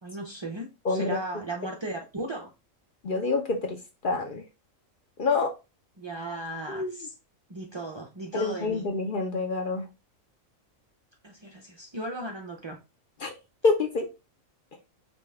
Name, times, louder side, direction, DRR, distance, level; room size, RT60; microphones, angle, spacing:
voice 1, 0.0-2.5 6.0-7.1 7.5-8.8 11.2-12.8, right 1 dB, 45° right, 0.3 m, -36 dB
voice 2, 0.8-1.2 3.0-3.8 4.0-4.4 5.2-5.5 6.7-7.0 8.3-9.9 13.2-13.3 13.6-14.1, left 3 dB, 50° left, 0.7 m, -27 dB
5.2 x 2.3 x 3.4 m
omnidirectional pair, 1.4 m